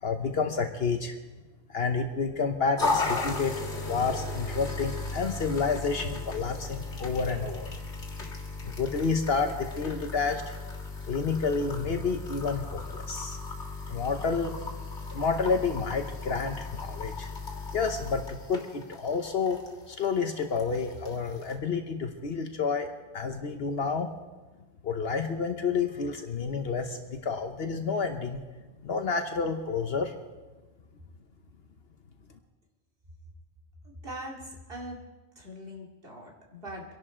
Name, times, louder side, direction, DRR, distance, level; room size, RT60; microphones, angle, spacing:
voice 1, 0.0-1.1 1.7-3.5 3.9-7.7 8.6-10.6 11.1-13.4 13.9-14.5 15.1-17.3 17.7-19.6 19.9-22.9 23.1-24.1 24.8-28.4 28.8-30.1, left 5 dB, 65° left, 6 dB, 1.1 m, -29 dB
sound 1, 2.8-21.6, left 3 dB, 80° left, 2.2 m, -36 dB
voice 2, 33.8-35.0 35.4-37.0, equal, 55° right, 0 dB, 2.8 m, -42 dB
25.5 x 11.0 x 4.4 m, 1.2 s
omnidirectional pair, 1.2 m